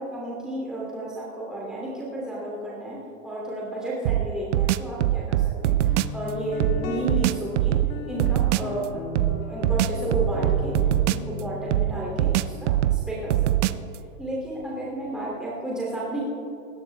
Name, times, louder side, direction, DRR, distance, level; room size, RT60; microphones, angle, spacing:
voice 1, 0.0-3.0 3.2-8.9 9.5-10.8 11.1-13.8 14.2-16.2, right 1 dB, ahead, -6 dB, 2.8 m, -32 dB
sound 1, 4.1-6.2 6.6-8.7 9.2-11.4 11.7-14.0, right 14 dB, 65° right, 0.5 m, -23 dB
Guitar, 5.9-15.3, left 4 dB, 50° left, 2.0 m, -37 dB
24.0 x 18.0 x 2.3 m, 2.8 s
supercardioid pair, 160°, 39 cm